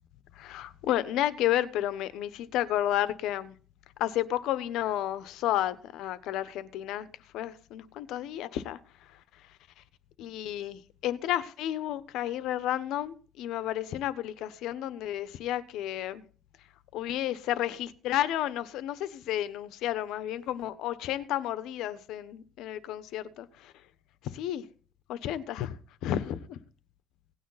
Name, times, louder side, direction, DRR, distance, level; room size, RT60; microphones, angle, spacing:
voice 1, 0.3-3.5 4.0-7.1 7.3-9.8 10.2-16.2 16.9-23.2 24.2-24.7 25.1-26.6, left 12 dB, 80° left, 1.1 m, -32 dB
17.5 x 9.3 x 4.1 m
cardioid pair, 125°, 0 cm